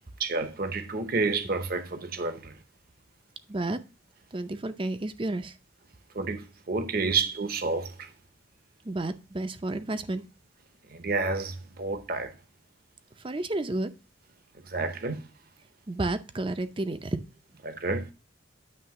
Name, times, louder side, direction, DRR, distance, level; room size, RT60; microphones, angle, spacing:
voice 1, 0.2-2.6 6.1-8.1 10.9-12.3 14.7-15.3 17.6-18.1, right 3 dB, 50° right, 0.9 m, -30 dB
voice 2, 3.5-3.8 4.3-5.6 8.8-10.2 13.2-13.9 15.9-17.2, right 2 dB, 25° right, 0.5 m, -31 dB
9.6 x 3.3 x 5.7 m
head